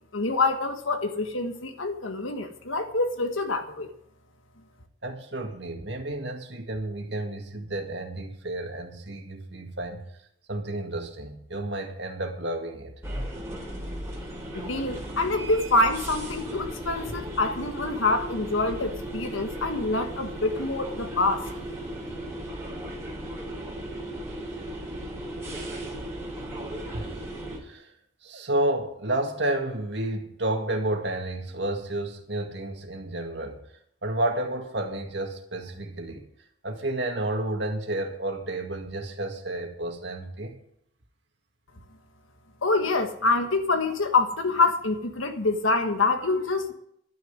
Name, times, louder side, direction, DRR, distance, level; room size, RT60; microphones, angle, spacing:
voice 1, 0.1-3.9 14.5-21.4 42.6-46.7, left 3 dB, 80° left, 6 dB, 1.5 m, -26 dB
voice 2, 5.0-10.0 10.5-12.9 26.9-27.3 27.6-27.9 28.2-33.6 34.0-36.2 36.6-40.6, right 1 dB, 60° right, 3 dB, 2.1 m, -31 dB
sound 1, 13.0-27.6, right 1 dB, 15° right, 3.3 m, -36 dB
11.5 x 6.7 x 9.6 m, 0.70 s
head